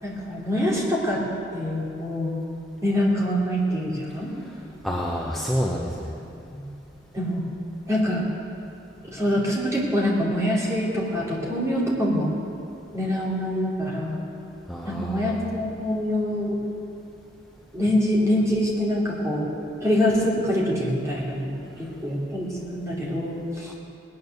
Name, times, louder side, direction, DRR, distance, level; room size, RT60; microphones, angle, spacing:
voice 1, 0.0-1.2 1.5-2.3 2.8-4.3 6.1-6.2 6.5-6.7 7.1-7.4 7.9-8.3 9.1-12.3 12.9-14.2 14.8-16.6 17.7-19.5 19.8-23.7, equal, 15° right, -5 dB, 2.9 m, -25 dB
voice 2, 4.8-6.1 14.7-15.4 23.7-23.8, equal, ahead, -4 dB, 1.0 m, -28 dB
19.0 x 9.6 x 6.6 m, 2.7 s
head